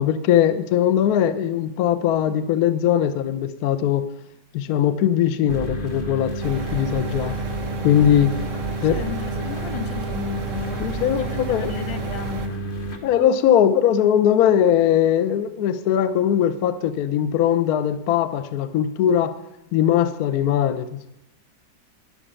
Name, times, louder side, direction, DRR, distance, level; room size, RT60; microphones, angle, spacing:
voice 1, 0.0-4.1 4.5-7.4 7.8-8.3 8.8-9.0 10.8-11.7 13.0-19.4 19.7-20.9, left 10 dB, 65° left, 12 dB, 1.1 m, -20 dB
sound 1, 5.5-13.0, right 1 dB, 35° left, 1.1 m, -30 dB
sound 2, 6.4-12.5, right 5 dB, 55° right, 0.9 m, -32 dB
voice 2, 8.5-12.6, left 9 dB, 85° left, 10 dB, 1.5 m, -35 dB
11.0 x 6.5 x 8.9 m, 0.89 s
omnidirectional pair, 2.0 m